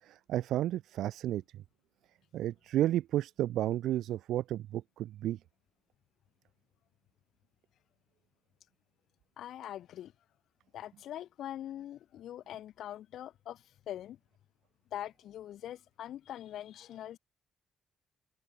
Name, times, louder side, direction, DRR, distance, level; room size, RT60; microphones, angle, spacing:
voice 1, 0.0-1.4 2.3-5.4, right 13 dB, 80° right, 6.9 m, -32 dB
voice 2, 9.4-10.1 10.7-14.2 14.9-17.2, left 11 dB, 75° left, 7.9 m, -43 dB
cardioid pair, 90°, 0 cm